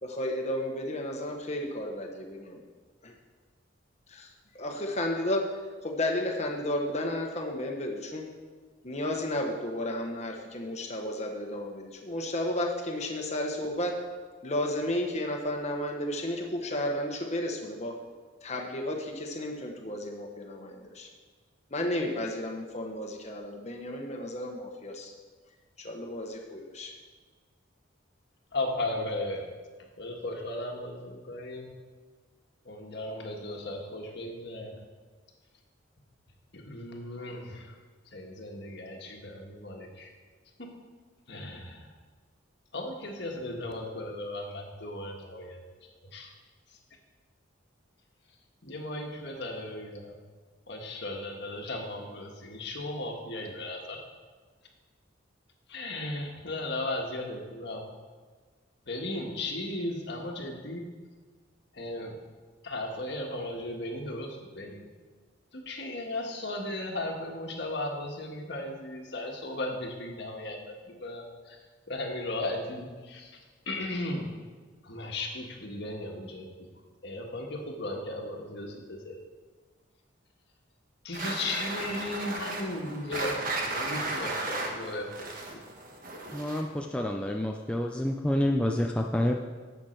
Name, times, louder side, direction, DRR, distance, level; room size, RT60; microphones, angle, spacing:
voice 1, 0.0-2.6 3.0-3.2 4.1-4.3 4.5-5.5 5.8-8.3 8.8-14.0 14.4-18.0 18.4-21.1 21.7-25.1 25.8-26.9, left 1 dB, 35° left, 1 dB, 1.3 m, -33 dB
voice 2, 28.5-29.5 30.0-31.7 32.6-34.7 36.5-37.7 38.1-40.1 40.6-40.7 41.3-41.9 42.7-45.6 46.1-46.3 48.6-50.2 50.7-54.0 55.7-57.8 58.8-60.8 61.7-62.2 62.6-64.8 65.5-71.6 71.9-73.4 73.6-74.3 74.8-76.5 77.0-79.1 81.0-85.4, left 1 dB, 60° left, 1 dB, 1.6 m, -36 dB
sound 1, 81.1-86.8, right 2 dB, 45° right, 1.4 m, -35 dB
voice 3, 86.3-89.3, left 1 dB, 5° left, 1 dB, 0.4 m, -28 dB
11.5 x 8.1 x 4.5 m, 1.5 s
head